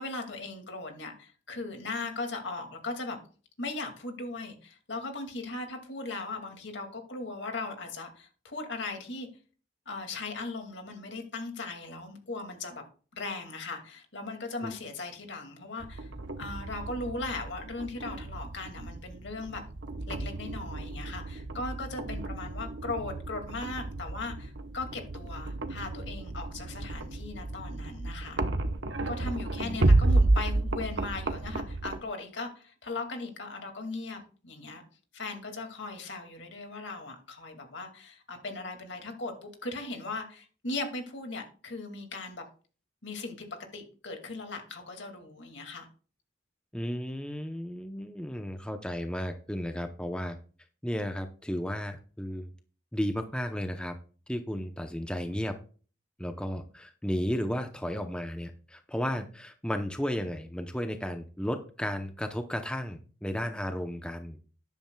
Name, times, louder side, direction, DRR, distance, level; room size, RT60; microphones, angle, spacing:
voice 1, 0.0-3.2 3.6-9.3 9.9-12.8 13.1-16.1 16.4-19.6 20.1-28.4 29.1-34.8 35.1-42.4 43.0-43.5 43.7-45.9, left 3 dB, 70° left, 4 dB, 2.3 m, -38 dB
sound 1, 15.8-32.0, right 2 dB, 75° right, 1.0 m, -31 dB
voice 2, 46.7-50.4 50.8-52.5 52.9-54.0 54.3-55.5 56.2-64.4, equal, 5° left, 6 dB, 0.7 m, -34 dB
13.0 x 10.5 x 2.3 m, 0.39 s
head